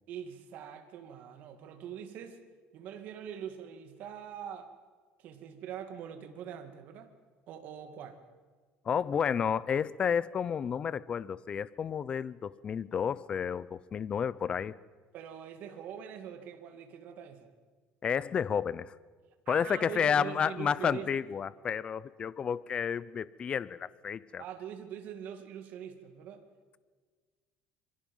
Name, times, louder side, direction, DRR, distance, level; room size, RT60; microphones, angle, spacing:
voice 1, 0.1-2.4 2.7-4.7 5.2-7.1 7.5-8.2 15.1-17.5 19.5-21.1 24.4-26.5, right 8 dB, 55° right, 7 dB, 2.4 m, -43 dB
voice 2, 8.8-14.7 18.0-18.9 19.5-24.4, left 7 dB, 30° left, 19 dB, 0.7 m, -31 dB
26.5 x 23.5 x 5.5 m, 1.5 s
cardioid pair, 140°, 3 cm